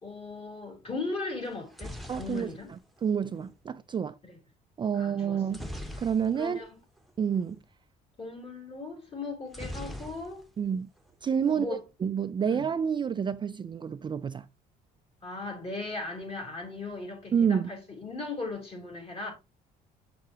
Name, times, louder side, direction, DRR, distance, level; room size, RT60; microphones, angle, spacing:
voice 1, 0.0-2.7 4.2-4.4 5.0-5.4 6.3-6.8 8.2-10.4 11.5-11.8 12.4-12.7 15.2-19.3, left 3 dB, 35° left, 3.7 m, -38 dB
sound 1, 1.5-3.6 5.5-6.7 7.0-7.1 7.3-7.6 9.5-10.7 11.0-11.6, equal, ahead, 1.0 m, -42 dB
voice 2, 2.1-2.5 3.0-4.2 4.8-5.7 6.0-6.7 7.2-7.6 10.6-10.9 11.2-14.5 17.3-17.7, right 7 dB, 30° right, 0.4 m, -29 dB
6.9 x 6.6 x 2.9 m
cardioid pair, 110°, 17 cm